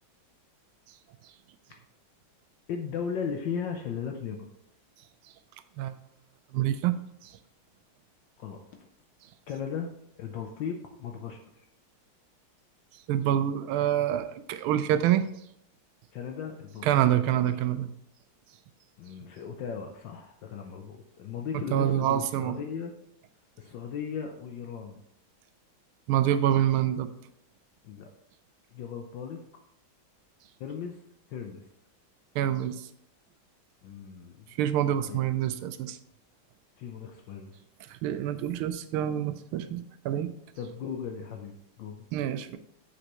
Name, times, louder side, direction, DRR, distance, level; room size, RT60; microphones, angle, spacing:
voice 1, 2.7-4.5 8.4-8.6 9.5-9.9 10.2-11.4 16.1-17.6 19.0-22.9 23.6-25.0 27.8-28.1 28.7-29.4 30.6-31.0 31.3-31.6 33.8-34.6 35.0-35.2 36.8-37.5 40.6-42.0, left 7 dB, 70° left, 3 dB, 1.3 m, -37 dB
voice 2, 6.5-6.9 7.2-7.3 13.1-15.2 16.8-17.9 21.7-22.6 26.1-27.1 32.3-32.9 34.6-36.0 37.9-40.3 42.1-42.6, right 11 dB, 90° right, 11 dB, 1.5 m, -26 dB
7.7 x 6.3 x 3.0 m, 0.75 s
omnidirectional pair, 2.3 m